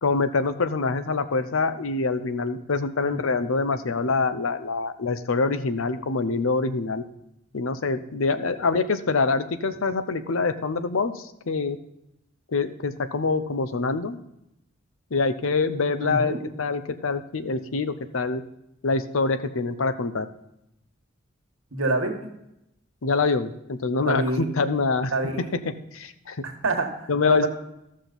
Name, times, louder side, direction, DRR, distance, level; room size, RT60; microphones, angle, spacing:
voice 1, 0.0-7.0 7.5-11.8 12.5-14.2 15.1-18.4 18.8-20.3 23.0-25.1 25.9-26.4 27.1-27.5, left 4 dB, 80° left, 11 dB, 0.7 m, -25 dB
voice 2, 16.0-16.4 21.7-22.1 24.0-24.4 25.1-25.5 26.4-27.5, right 2 dB, 85° right, 3 dB, 1.5 m, -27 dB
13.5 x 6.3 x 3.9 m, 0.83 s
head